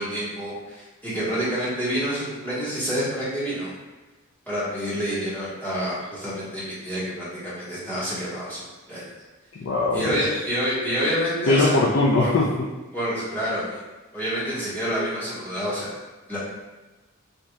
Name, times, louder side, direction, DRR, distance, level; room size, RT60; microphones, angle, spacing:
voice 1, 0.0-3.7 4.5-8.6 8.9-9.0 9.9-11.8 12.2-12.3 12.9-13.8 14.1-15.9 16.3-16.4, equal, 10° left, -11 dB, 1.4 m, -28 dB
voice 2, 9.6-10.4 11.5-12.7, left 2 dB, 65° left, -3 dB, 0.5 m, -21 dB
5.2 x 2.7 x 2.3 m, 1.2 s
head